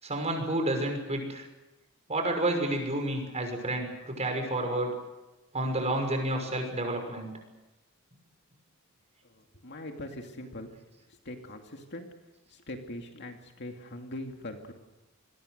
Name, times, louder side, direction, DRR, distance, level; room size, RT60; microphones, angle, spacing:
voice 1, 0.0-1.5 2.1-4.9 5.5-7.3, right 1 dB, 30° right, 4 dB, 6.0 m, -30 dB
voice 2, 9.2-10.7 11.1-12.1 12.5-14.7, left 1 dB, 55° left, 4 dB, 2.4 m, -42 dB
28.5 x 22.0 x 6.7 m, 1.0 s
head